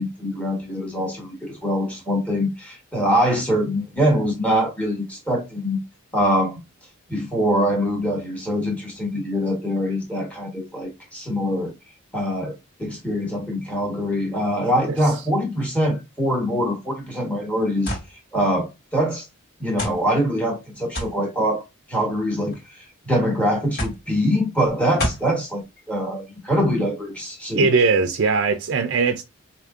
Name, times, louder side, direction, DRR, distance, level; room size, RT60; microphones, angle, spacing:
voice 1, 0.0-5.8 6.1-6.6 7.1-11.7 12.1-12.5 12.8-18.0 18.3-19.3 19.6-21.6 21.9-25.6 25.9-27.7, equal, 5° left, 1.2 m, -23 dB
sound 1, 17.9-18.1 19.0-19.1 19.8-20.0 20.9-21.2 22.2-22.6 23.8-24.1 25.0-25.3, left 1 dB, 45° left, 1.7 m, -27 dB
voice 2, 27.5-29.2, right 4 dB, 50° right, 0.4 m, -19 dB
5.0 x 2.8 x 2.4 m
head